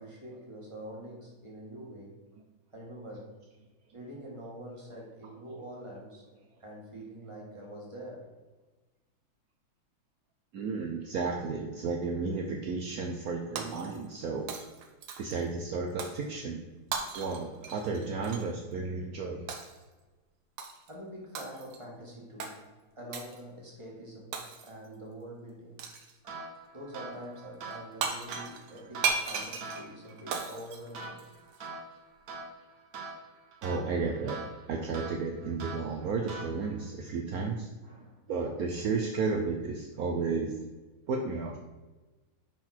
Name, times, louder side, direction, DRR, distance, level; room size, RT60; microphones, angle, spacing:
voice 1, 0.0-2.3 2.7-3.4 3.9-6.2 6.6-8.3 20.9-25.8 26.7-31.2 37.8-38.5, right 1 dB, 15° right, -3 dB, 1.8 m, -45 dB
voice 2, 10.5-14.5 15.2-16.6 17.1-19.5 33.6-34.4 34.7-37.7 38.3-40.5 41.1-41.6, right 4 dB, 65° right, 1 dB, 0.9 m, -33 dB
Shatter, 13.6-14.2 14.5-15.4 16.0-16.2 16.9-18.5 19.5-19.8 20.6-20.9 21.3-21.8 22.4-22.6 23.1-23.4 24.3-24.9 25.8-26.2 27.7-27.8 28.0-31.6, right 5 dB, 85° right, 1.8 m, -36 dB
sound 1, 26.2-36.9, right 3 dB, 50° right, 1.4 m, -44 dB
10.5 x 4.0 x 4.4 m, 1.2 s
omnidirectional pair, 2.3 m